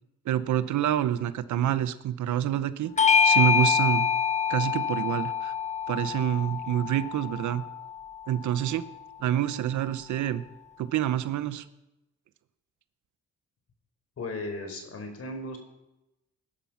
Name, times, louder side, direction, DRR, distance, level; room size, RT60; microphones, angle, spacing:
voice 1, 0.2-2.9 3.2-4.1 4.5-5.5 5.9-7.6 8.3-8.8 9.2-10.4 10.8-11.6, right 11 dB, 75° right, 13 dB, 1.0 m, -27 dB
Bell / Doorbell, 3.0-7.8, left 7 dB, 25° left, 0.7 m, -25 dB
voice 2, 14.2-15.6, left 2 dB, 50° left, 5 dB, 4.6 m, -36 dB
20.0 x 11.5 x 5.8 m, 0.94 s
cardioid pair, 90°, 30 cm